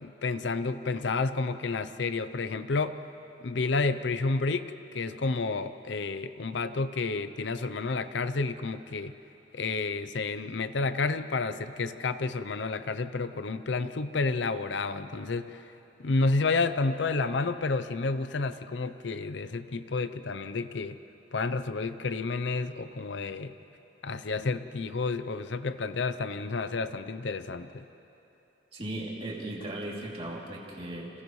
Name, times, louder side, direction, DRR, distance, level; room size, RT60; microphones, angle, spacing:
voice 1, 0.0-3.0 3.4-9.1 9.5-15.6 16.0-21.0 21.3-23.5 24.0-27.9, left 3 dB, 70° left, 12 dB, 0.6 m, -30 dB
voice 2, 28.7-31.2, right 1 dB, 30° right, -3 dB, 2.9 m, -37 dB
30.0 x 27.0 x 3.2 m, 3.0 s
head